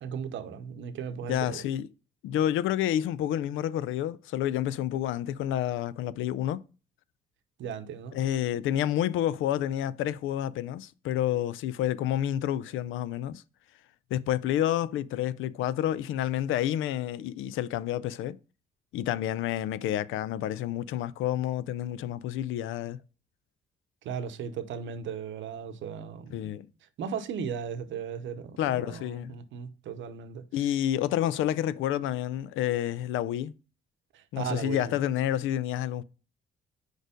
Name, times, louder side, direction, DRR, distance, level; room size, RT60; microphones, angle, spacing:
voice 1, 0.0-1.6 7.6-8.2 24.0-26.5 27.0-30.5 34.1-34.9, right 7 dB, 75° right, 0.8 m, -36 dB
voice 2, 1.3-1.9 2.2-6.6 8.1-13.4 14.1-18.4 18.9-23.0 26.3-26.7 28.6-29.4 30.5-33.5 34.3-36.0, left 11 dB, 85° left, 0.4 m, -29 dB
4.8 x 4.4 x 5.0 m
cardioid pair, 90°, 20 cm